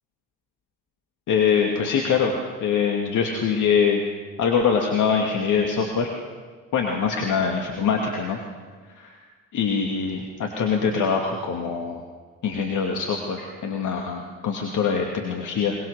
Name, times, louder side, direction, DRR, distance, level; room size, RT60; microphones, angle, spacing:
voice 1, 1.3-4.0 4.4-6.1 6.7-8.4 9.0-9.2 9.5-12.0 12.4-15.8, left 6 dB, 55° left, 1 dB, 2.5 m, -23 dB
22.5 x 20.5 x 6.6 m, 1.5 s
hypercardioid pair, 50°, 37 cm